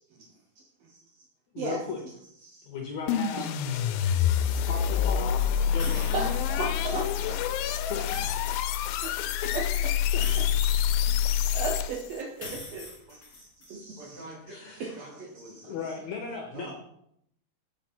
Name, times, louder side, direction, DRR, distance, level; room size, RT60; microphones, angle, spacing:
voice 1, 1.5-2.0 2.6-3.5 4.7-7.0 7.9-8.1 10.1-10.2 14.5-14.9 15.7-16.8, left 6 dB, 70° left, 1 dB, 1.8 m, -36 dB
sound 1, 3.1-12.2, left 9 dB, 85° left, 2.4 m, -27 dB
voice 2, 4.1-4.6 5.9-7.3 9.0-9.1 9.5-9.6 10.7-13.2 13.7-14.0 14.8-14.9, right 4 dB, 80° right, 1 dB, 1.4 m, -36 dB
sound 2, 5.8-6.7 7.9-9.1 10.1-11.5 12.4-13.7, left 3 dB, 35° left, 2.0 m, -43 dB
voice 3, 14.0-16.1 16.5-16.8, right 1 dB, 50° right, -5 dB, 4.3 m, -47 dB
8.4 x 5.9 x 4.4 m, 0.74 s
omnidirectional pair, 4.2 m